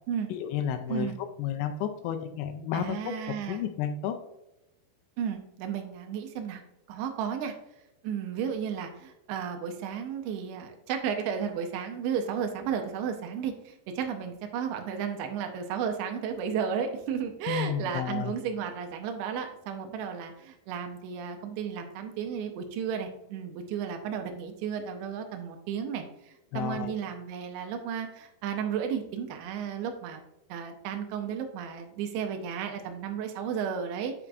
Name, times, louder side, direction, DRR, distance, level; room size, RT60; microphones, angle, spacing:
voice 1, 0.3-4.2 17.5-18.3 26.5-26.9, left 9 dB, 80° left, 7 dB, 2.4 m, -32 dB
voice 2, 2.7-3.6 5.2-6.6 6.9-7.5 8.0-30.2 30.5-34.1, right 7 dB, 90° right, 5 dB, 3.0 m, -33 dB
8.8 x 4.6 x 2.5 m, 0.87 s
omnidirectional pair, 5.1 m